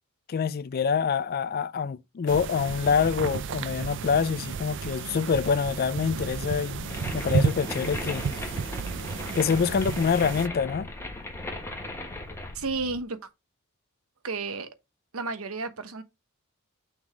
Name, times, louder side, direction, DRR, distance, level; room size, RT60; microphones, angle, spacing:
voice 1, 0.3-8.2 9.3-10.9, left 6 dB, 45° left, 0.4 m, -26 dB
sound 1, 2.3-10.5, right 5 dB, 60° right, 0.5 m, -32 dB
Purr, 6.0-13.0, left 2 dB, 65° left, 0.8 m, -44 dB
sound 2, 6.9-12.5, left 1 dB, 10° left, 1.3 m, -38 dB
voice 2, 12.5-13.2 14.2-14.7 15.1-16.0, right 3 dB, 80° right, 1.0 m, -32 dB
6.0 x 3.8 x 4.8 m
head